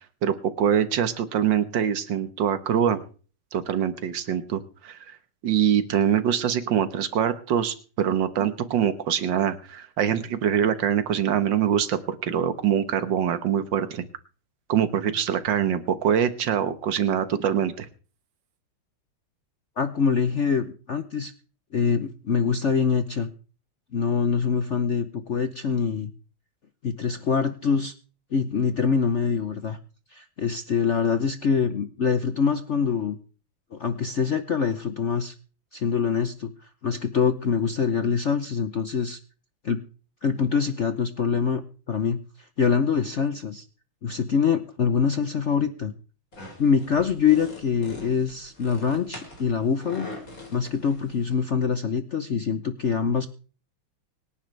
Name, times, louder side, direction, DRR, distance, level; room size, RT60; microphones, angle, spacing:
voice 1, 0.2-3.0 3.5-5.0 5.4-14.0 14.7-17.9, right 9 dB, 60° right, 11 dB, 1.8 m, -24 dB
voice 2, 19.8-21.3 21.7-23.3 23.9-26.1 26.8-27.9 28.3-29.8 30.1-33.2 33.7-35.3 35.7-36.5 36.8-39.2 39.6-39.8 40.2-42.2 42.6-43.6 44.0-45.9 46.6-50.1 50.5-53.3, left 6 dB, 80° left, 10 dB, 0.6 m, -24 dB
sound 1, 46.3-51.3, left 1 dB, 40° left, 4.6 m, -43 dB
25.0 x 10.5 x 3.3 m, 0.38 s
omnidirectional pair, 2.4 m